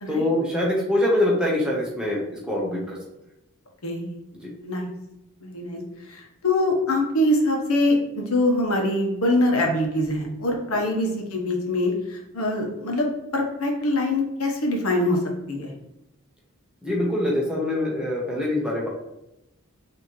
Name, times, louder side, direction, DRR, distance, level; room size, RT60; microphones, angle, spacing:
voice 1, 0.1-3.0 4.4-4.5 16.8-18.9, left 1 dB, 5° right, -4 dB, 0.9 m, -24 dB
voice 2, 3.8-4.2 4.6-4.9 5.4-5.8 6.1-15.2 15.5-15.7, left 1 dB, 75° left, 1 dB, 1.0 m, -24 dB
5.8 x 2.9 x 3.1 m, 0.88 s
head